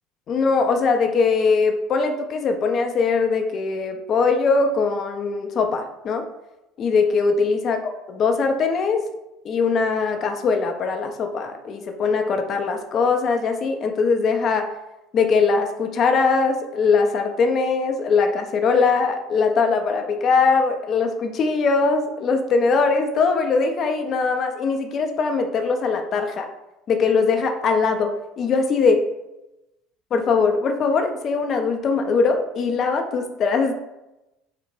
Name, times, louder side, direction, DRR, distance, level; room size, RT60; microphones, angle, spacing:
voice 1, 0.3-6.2 6.8-9.1 9.4-14.7 15.1-26.5 26.9-29.0 30.1-33.7, left 4 dB, 45° left, 5 dB, 0.3 m, -21 dB
2.8 x 2.1 x 3.0 m, 0.93 s
hypercardioid pair, 65°, 0 cm